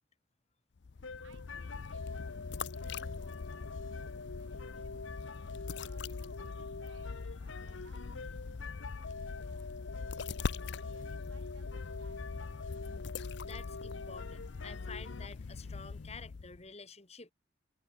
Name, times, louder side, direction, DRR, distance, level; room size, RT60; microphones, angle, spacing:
sound 1, 0.8-16.7, left 4 dB, 60° left, 0.5 m, -42 dB
sound 2, 1.0-15.3, left 4 dB, 75° left, 1.2 m, -46 dB
voice 1, 1.2-4.9 5.8-9.8 10.4-12.6, right 3 dB, 75° right, 4.0 m, -65 dB
voice 2, 13.4-17.3, left 5 dB, 30° left, 1.6 m, -50 dB
head